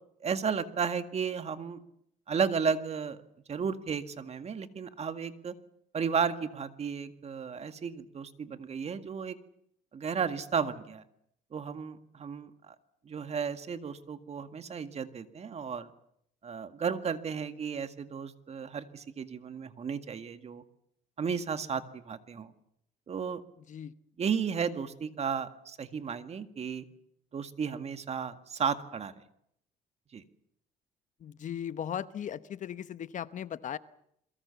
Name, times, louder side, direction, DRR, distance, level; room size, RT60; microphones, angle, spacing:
voice 1, 0.2-1.8 2.3-3.2 3.5-5.5 5.9-9.4 9.9-11.0 11.5-12.8 13.1-15.9 16.4-20.6 21.2-22.5 23.1-23.4 24.2-26.9 27.3-29.1 30.1-30.2, right 6 dB, 40° right, 10 dB, 1.9 m, -33 dB
voice 2, 31.2-33.8, left 9 dB, 50° left, 14 dB, 1.0 m, -37 dB
28.5 x 22.5 x 7.1 m, 0.73 s
cardioid pair, 110°, 17 cm